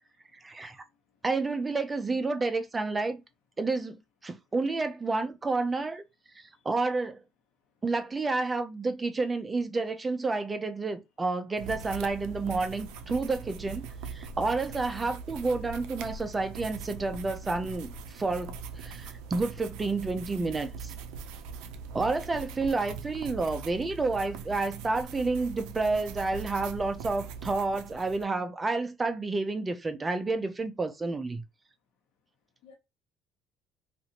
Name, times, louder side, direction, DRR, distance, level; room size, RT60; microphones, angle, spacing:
voice 1, 0.4-0.8 1.2-3.2 3.6-6.0 6.4-7.2 7.8-20.9 21.9-31.4, right 3 dB, 20° right, 0.5 m, -30 dB
voice 2, 2.2-2.5 22.7-22.9 23.2-23.5 32.6-32.8, left 6 dB, 80° left, 1.1 m, -56 dB
sound 1, 11.6-28.2, right 5 dB, 80° right, 0.4 m, -41 dB
2.9 x 2.5 x 2.8 m
supercardioid pair, 90°, 0 cm